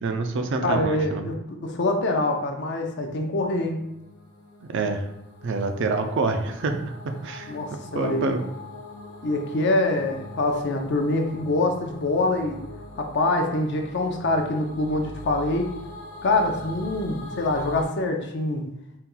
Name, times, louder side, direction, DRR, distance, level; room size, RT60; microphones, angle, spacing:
voice 1, 0.0-1.3 4.6-5.0 5.4-6.9 7.2-7.5 7.9-8.5, right 3 dB, 55° right, 6 dB, 0.4 m, -26 dB
voice 2, 0.6-3.8 7.5-8.3 9.2-12.6 13.0-15.7 16.2-18.7, left 2 dB, 55° left, 3 dB, 0.6 m, -25 dB
sound 1, 2.9-17.8, left 2 dB, 90° left, 0.7 m, -42 dB
4.2 x 2.3 x 3.7 m, 0.83 s
head